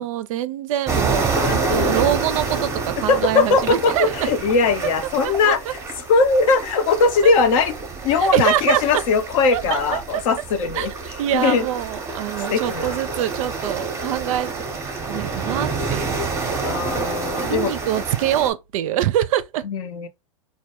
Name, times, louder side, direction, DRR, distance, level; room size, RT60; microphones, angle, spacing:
voice 1, 0.0-4.3 5.2-5.7 7.2-7.3 8.2-9.0 9.5-10.2 10.8-14.6 15.1-16.2 17.5-19.6, right 12 dB, 65° right, 0.4 m, -24 dB
sound 1, 0.9-18.5, right 4 dB, 15° right, 0.7 m, -28 dB
voice 2, 1.2-2.1 3.1-5.8 6.1-7.7 8.0-10.9 11.3-11.7 12.5-13.0 16.6-17.7 19.6-20.1, left 4 dB, 60° left, 0.6 m, -20 dB
2.1 x 2.1 x 2.9 m
hypercardioid pair, 115°, 19 cm